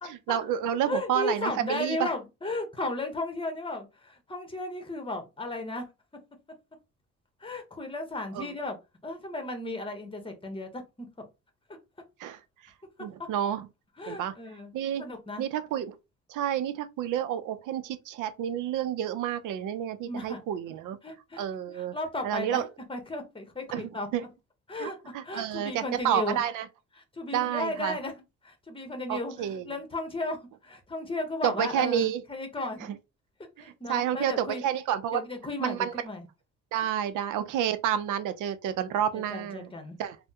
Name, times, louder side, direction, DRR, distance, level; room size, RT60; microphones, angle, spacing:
voice 1, 0.0-2.1 8.3-8.5 12.2-12.7 13.0-13.7 14.1-14.3 14.7-15.0 15.4-16.0 16.3-21.0 21.4-22.0 22.2-22.7 23.7-23.8 24.1-24.3 24.8-26.7 27.3-28.0 29.1-29.7 31.4-32.2 32.8-33.0 33.6-35.2 35.6-35.9 36.7-39.7 40.0-40.2, right 10 dB, 85° right, 0.5 m, -30 dB
voice 2, 0.9-5.9 7.4-8.8 9.0-11.1 14.0-14.7 15.0-15.5 20.1-20.4 21.0-21.4 21.7-22.6 22.9-24.1 24.7-26.4 27.1-28.1 28.4-32.9 33.6-34.6 35.1-36.2 39.1-40.0, left 2 dB, 15° left, 0.9 m, -35 dB
3.3 x 2.1 x 2.8 m
cardioid pair, 90°, 30 cm